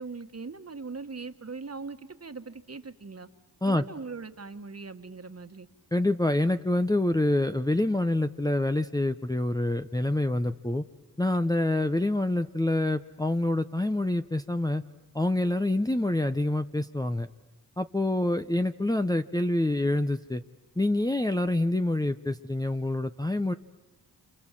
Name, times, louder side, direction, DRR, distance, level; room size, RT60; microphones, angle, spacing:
voice 1, 0.0-3.3 3.7-5.7, right 4 dB, 35° right, 9 dB, 1.7 m, -40 dB
voice 2, 5.9-10.8 11.2-14.8 15.1-17.3 17.8-20.4 20.8-23.5, left 1 dB, 10° left, 7 dB, 0.9 m, -26 dB
28.5 x 27.5 x 7.6 m, 1.1 s
cardioid pair, 50°, 41 cm